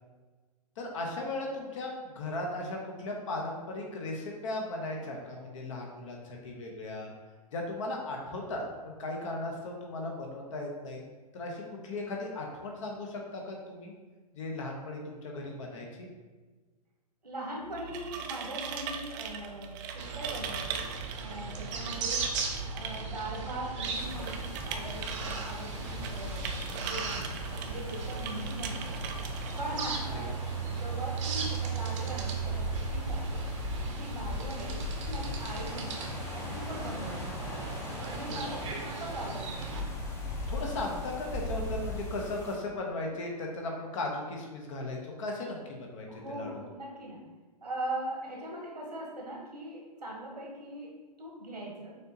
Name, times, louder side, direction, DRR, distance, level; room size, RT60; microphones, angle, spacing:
voice 1, 0.8-7.1 7.5-11.0 11.3-13.9 14.3-16.1 30.1-30.3 38.3-38.5 40.5-46.1 46.3-46.5, left 2 dB, 50° left, 0 dB, 0.9 m, -37 dB
voice 2, 17.2-22.3 22.7-29.1 29.6-33.4 33.8-37.3 38.0-39.7 46.1-47.2 47.6-51.9, right 1 dB, 85° right, -3 dB, 1.3 m, -41 dB
sound 1, 17.6-30.3, right 7 dB, 30° right, 0.4 m, -41 dB
sound 2, 20.0-39.8, right 4 dB, 50° right, 0.8 m, -37 dB
sound 3, 23.9-42.6, left 1 dB, 10° left, 0.7 m, -40 dB
6.5 x 2.8 x 2.8 m, 1.3 s
figure-of-eight pair, 115°, 20 cm